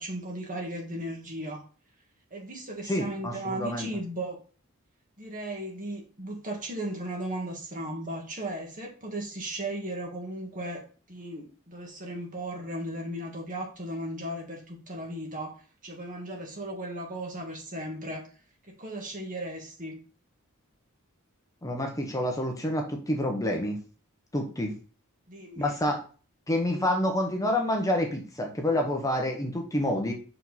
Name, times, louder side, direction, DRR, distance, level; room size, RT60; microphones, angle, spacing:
voice 1, 0.0-1.6 2.3-4.4 5.2-15.6 15.8-18.3 18.7-20.0 25.3-25.7, right 1 dB, 40° right, 1 dB, 1.8 m, -36 dB
voice 2, 2.8-3.9 21.6-23.8 24.3-24.7 25.6-26.0 26.5-30.1, left 1 dB, 15° left, 2 dB, 0.9 m, -28 dB
5.8 x 5.0 x 4.0 m, 0.38 s
head